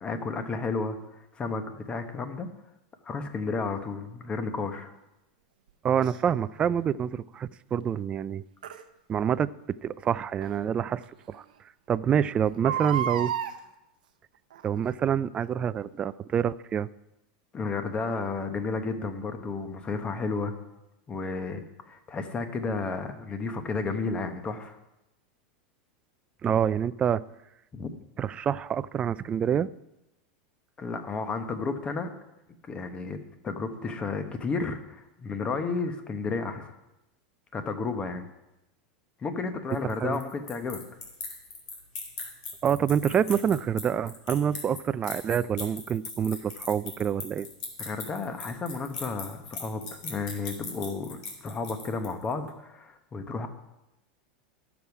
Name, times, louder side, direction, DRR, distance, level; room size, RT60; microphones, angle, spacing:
voice 1, 0.0-2.5 3.0-4.9 17.5-20.6 21.1-24.8 27.7-27.9 30.8-32.1 32.6-33.2 33.4-36.7 37.5-38.3 39.2-40.8 47.8-53.5, left 4 dB, 25° left, 8 dB, 1.1 m, -32 dB
voice 2, 5.8-8.4 9.1-9.5 9.8-11.0 11.3-11.4 11.9-13.3 14.6-16.9 26.4-27.2 28.2-29.7 40.0-40.2 42.6-47.5, right 8 dB, 25° right, 16 dB, 0.3 m, -27 dB
Crying sobbing, 6.0-6.2 8.6-8.8 10.4-10.5 11.0-11.1 11.3-11.4 12.5-13.6 14.5-14.8 15.4-15.5, right 10 dB, 85° right, 0.7 m, -31 dB
sound 1, 39.7-52.3, left 4 dB, 80° left, 2.5 m, -39 dB
12.5 x 7.1 x 4.8 m, 0.93 s
supercardioid pair, 115°, 4 cm